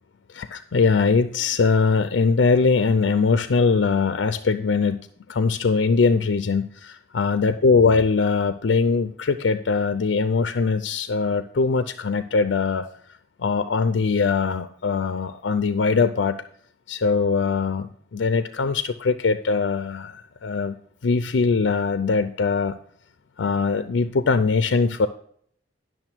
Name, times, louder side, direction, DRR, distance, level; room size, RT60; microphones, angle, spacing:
voice 1, 0.3-5.0 5.3-12.8 13.4-16.4 16.9-20.8 21.0-22.8 23.4-25.1, left 4 dB, 85° left, 11 dB, 0.5 m, -21 dB
10.5 x 6.3 x 4.5 m, 0.62 s
head